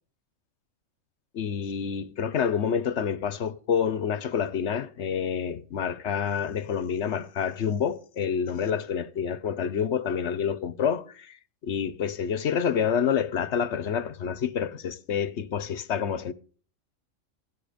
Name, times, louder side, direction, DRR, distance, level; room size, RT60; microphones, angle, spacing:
voice 1, 1.3-11.3 11.6-16.3, left 7 dB, 60° left, 1.1 m, -28 dB
16.5 x 12.0 x 5.1 m
omnidirectional pair, 1.3 m